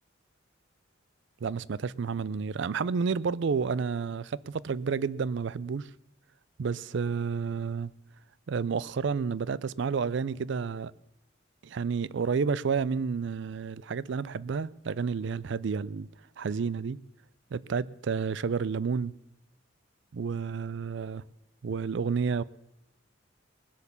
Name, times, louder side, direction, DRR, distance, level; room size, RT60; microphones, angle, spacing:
voice 1, 1.4-5.9 6.6-7.9 8.5-10.9 11.6-16.1 16.4-17.0 17.5-19.2 20.1-21.2 21.6-22.4, right 5 dB, 65° right, 0.4 m, -30 dB
20.0 x 8.2 x 7.0 m
head